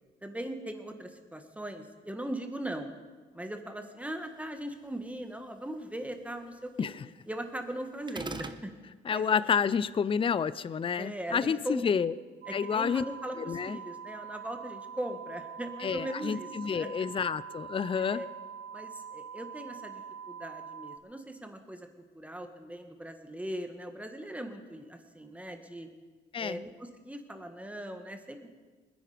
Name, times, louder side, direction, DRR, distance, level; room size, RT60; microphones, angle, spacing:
voice 1, 0.2-2.9 3.3-6.9 7.3-8.7 9.1-9.4 11.0-11.9 12.5-16.9 18.0-18.3 18.7-20.0 20.3-21.9 22.1-25.9 26.4-28.5, right 1 dB, 5° right, 6 dB, 1.7 m, -39 dB
sound 1, 8.1-8.6, right 3 dB, 25° right, 0.9 m, -37 dB
voice 2, 9.1-12.1 12.5-13.0 13.4-13.8 15.8-18.2 26.3-26.6, left 7 dB, 25° left, 17 dB, 0.4 m, -29 dB
sound 2, 12.4-21.0, right 7 dB, 55° right, 0.9 m, -44 dB
20.5 x 10.5 x 5.1 m, 1.4 s
cardioid pair, 90°, 20 cm